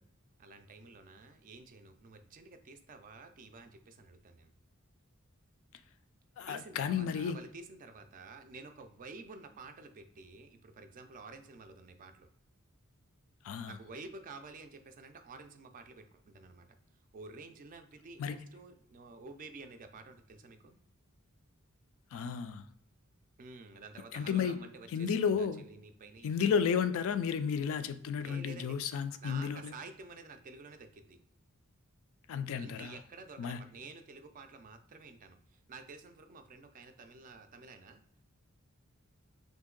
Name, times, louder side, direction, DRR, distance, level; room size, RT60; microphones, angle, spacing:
voice 1, 0.4-4.5 6.5-12.3 13.7-16.8 17.1-20.8 23.4-26.5 28.2-28.8 29.2-31.2 32.6-38.0, right 3 dB, 40° right, 7 dB, 0.4 m, -51 dB
voice 2, 6.4-7.4 13.4-13.8 18.2-18.4 22.1-22.6 24.1-24.6 24.9-25.6 26.2-29.7 32.3-33.0 33.4-33.6, left 7 dB, 65° left, 11 dB, 0.3 m, -32 dB
2.9 x 2.6 x 3.7 m, 0.75 s
head